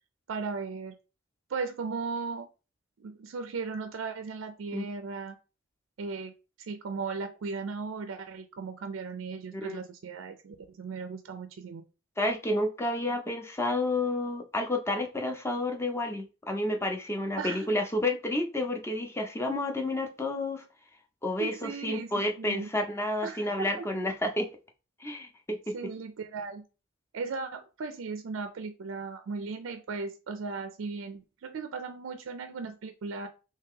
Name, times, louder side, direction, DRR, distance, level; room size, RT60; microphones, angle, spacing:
voice 1, 0.3-1.0 1.5-2.5 3.0-5.4 6.0-6.3 6.6-11.8 17.4-17.7 21.4-22.7 23.2-23.9 25.7-26.6 27.1-33.3, right 4 dB, 75° right, 0.4 m, -37 dB
voice 2, 12.2-20.6 21.2-24.5 25.0-25.9, left 1 dB, 15° left, 0.6 m, -30 dB
3.1 x 2.8 x 3.6 m
head